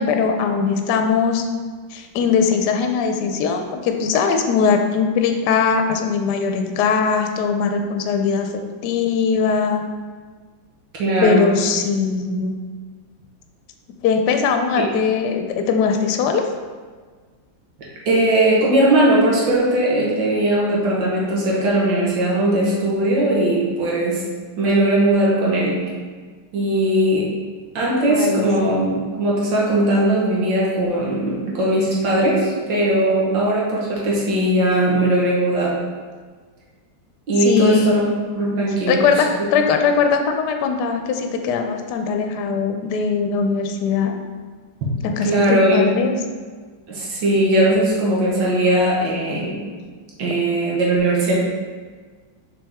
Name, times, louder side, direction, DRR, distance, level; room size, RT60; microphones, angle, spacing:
voice 1, 0.0-1.4 1.9-8.5 8.8-9.8 11.2-12.5 14.0-16.5 28.1-28.9 37.4-38.0 38.9-44.1 45.0-46.2, left 5 dB, 70° left, 5 dB, 1.1 m, -20 dB
voice 2, 11.0-11.5 14.8-14.9 18.1-24.2 24.6-25.8 26.5-27.3 27.8-35.8 37.3-38.1 38.4-39.0 45.2-45.9 46.9-49.6 50.2-51.3, right 1 dB, 85° right, -5 dB, 2.0 m, -19 dB
6.2 x 4.4 x 3.5 m, 1.5 s
omnidirectional pair, 2.0 m